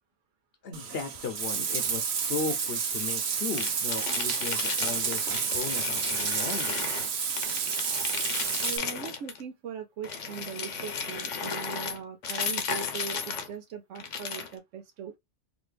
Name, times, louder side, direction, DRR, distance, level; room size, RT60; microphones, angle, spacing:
voice 1, 0.6-6.8, left 5 dB, 60° left, 0.9 m, -36 dB
Bathtub (filling or washing), 0.7-8.8, right 6 dB, 65° right, 1.0 m, -30 dB
sound 1, 3.5-7.1 7.4-9.4 10.0-13.5 14.0-14.5, left 6 dB, 85° left, 1.2 m, -34 dB
voice 2, 8.6-15.1, right 7 dB, 90° right, 1.0 m, -40 dB
4.0 x 2.6 x 3.2 m
omnidirectional pair, 1.2 m